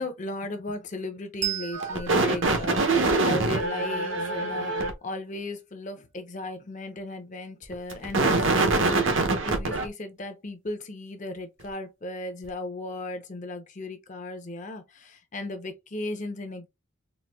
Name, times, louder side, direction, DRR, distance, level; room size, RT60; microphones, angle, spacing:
voice 1, 0.0-16.7, left 2 dB, 35° left, 0.6 m, -36 dB
Bell, 1.4-4.5, right 11 dB, 30° right, 0.7 m, -38 dB
sound 1, 1.7-4.9 7.7-9.9, right 3 dB, 60° right, 0.8 m, -24 dB
4.0 x 2.6 x 2.2 m
head